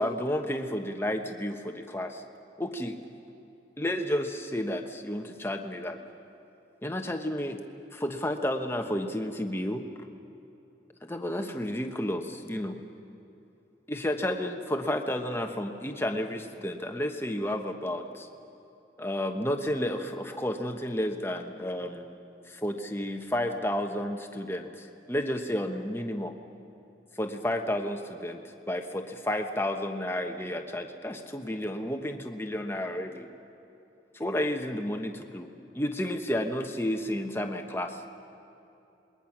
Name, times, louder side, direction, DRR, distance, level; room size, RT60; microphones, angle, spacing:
voice 1, 0.0-2.2 2.6-3.0 3.8-6.0 6.8-7.6 7.9-9.8 11.0-12.8 13.9-18.3 19.0-22.2 22.5-26.3 27.2-28.4 28.7-33.3 34.1-35.5 35.7-38.1, left 1 dB, 10° left, 4 dB, 1.1 m, -31 dB
27.5 x 21.5 x 6.1 m, 2.9 s
head